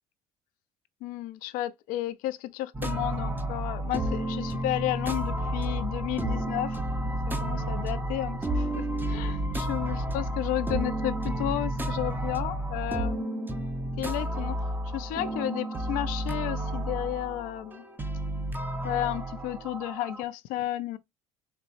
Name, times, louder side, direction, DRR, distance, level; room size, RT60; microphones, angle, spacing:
voice 1, 1.0-6.8 7.0-7.1 7.4-13.7 14.0-14.6 14.9-17.8 18.8-21.0, left 14 dB, 75° left, 0.6 m, -33 dB
sound 1, 2.7-20.2, right 1 dB, 15° right, 0.8 m, -31 dB
4.4 x 3.0 x 2.6 m
supercardioid pair, 100°, 15 cm